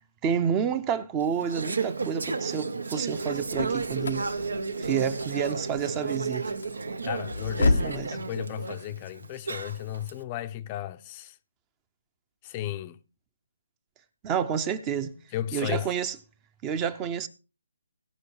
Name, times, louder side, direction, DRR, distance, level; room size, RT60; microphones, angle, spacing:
voice 1, 0.2-4.3 4.8-6.5 7.6-8.1 14.2-15.1 15.5-16.2 16.6-17.3, right 7 dB, 15° right, 0.7 m, -29 dB
Conversation / Chatter, 1.2-10.1, right 4 dB, 80° right, 1.6 m, -33 dB
sound 1, 3.3-8.1, left 3 dB, 85° left, 0.8 m, -31 dB
voice 2, 7.0-11.4 12.4-13.0 15.3-15.9, left 12 dB, 20° left, 0.6 m, -34 dB
18.0 x 6.2 x 4.8 m
hypercardioid pair, 165°, 0 cm